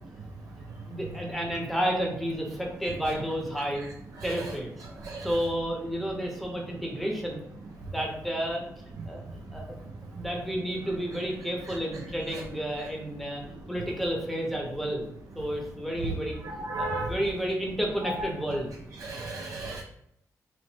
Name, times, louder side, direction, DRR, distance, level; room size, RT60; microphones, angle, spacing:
voice 1, 0.8-3.8 4.2-4.7 5.2-7.4 7.9-8.6 9.1-9.2 9.5-9.7 10.1-13.4 13.7-15.1 15.4-16.4 16.8-18.7, equal, ahead, 0 dB, 0.7 m, -31 dB
voice 2, 4.2-4.5 5.1-5.3 11.7-11.8 12.3-12.4 16.6-17.1 18.0-18.1 19.0-19.8, right 2 dB, 70° right, -1 dB, 0.4 m, -34 dB
2.9 x 2.0 x 3.2 m, 0.74 s
cardioid pair, 95°, 6 cm